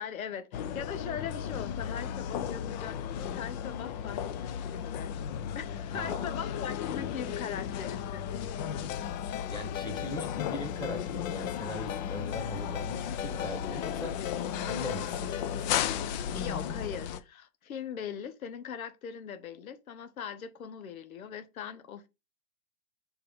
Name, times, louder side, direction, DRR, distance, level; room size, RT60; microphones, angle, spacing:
voice 1, 0.0-5.1 5.5-8.3 16.3-22.1, left 8 dB, 85° left, 1.2 m, -40 dB
sound 1, 0.5-17.2, left 9 dB, 35° left, 0.6 m, -35 dB
voice 2, 5.9-6.3 9.5-10.3 10.5-14.2 14.7-15.7, left 1 dB, 10° left, 1.5 m, -40 dB
Ringtone, 8.9-15.8, left 12 dB, 70° left, 0.8 m, -42 dB
5.1 x 4.9 x 5.1 m
hypercardioid pair, 145°, 41 cm